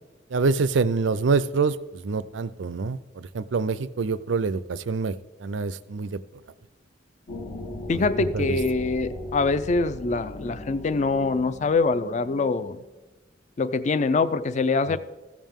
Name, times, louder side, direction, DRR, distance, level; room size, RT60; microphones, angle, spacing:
voice 1, 0.3-5.1 5.4-6.2 8.0-8.1 8.3-8.6, right 4 dB, 90° right, 16 dB, 0.4 m, -26 dB
sound 1, 7.3-12.7, left 1 dB, 60° left, 1.3 m, -38 dB
voice 2, 7.9-12.8 13.6-15.0, left 3 dB, 40° left, 14 dB, 0.4 m, -24 dB
15.0 x 7.3 x 3.6 m, 1.1 s
head